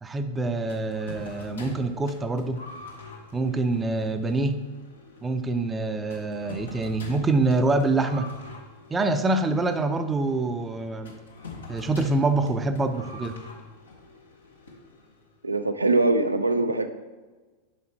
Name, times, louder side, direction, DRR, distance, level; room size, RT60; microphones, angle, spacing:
voice 1, 0.0-2.6 3.3-4.7 5.2-8.3 8.9-11.1 11.7-13.4, right 2 dB, 15° right, 8 dB, 0.5 m, -25 dB
sound 1, 0.7-15.4, left 3 dB, 70° left, 1.2 m, -45 dB
voice 2, 15.4-16.9, right 2 dB, 80° right, 8 dB, 0.4 m, -22 dB
7.5 x 5.8 x 4.3 m, 1.3 s
figure-of-eight pair, 90°, 0 cm